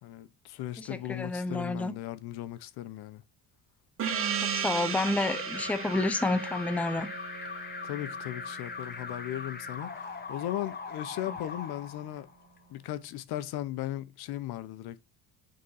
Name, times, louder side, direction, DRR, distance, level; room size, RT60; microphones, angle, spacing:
voice 1, 0.0-3.2 7.8-12.3 12.7-15.0, left 13 dB, 70° left, 0.8 m, -37 dB
voice 2, 0.8-1.9 4.4-7.1, left 2 dB, 5° left, 0.6 m, -30 dB
Gong, 4.0-9.1, right 7 dB, 35° right, 1.1 m, -35 dB
Alarm, 4.7-12.6, left 5 dB, 25° left, 1.0 m, -41 dB
6.6 x 3.9 x 5.5 m
cardioid pair, 125°, 39 cm